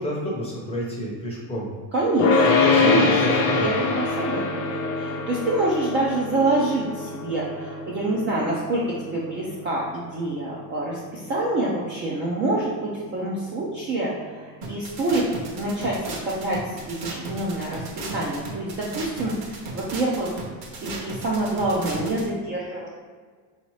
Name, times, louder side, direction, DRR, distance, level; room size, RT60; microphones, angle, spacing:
voice 1, 0.0-1.7 2.4-3.7, equal, 15° left, -4 dB, 0.7 m, -29 dB
voice 2, 1.9-2.5 2.8-15.3 15.6-20.5 20.8-22.9, right 2 dB, 25° right, -6 dB, 0.4 m, -26 dB
sound 1, 2.2-13.5, left 4 dB, 60° left, 0.8 m, -25 dB
sound 2, 14.6-22.2, right 2 dB, 50° right, 0.9 m, -35 dB
3.9 x 2.8 x 4.6 m, 1.5 s
cardioid pair, 165°, 48 cm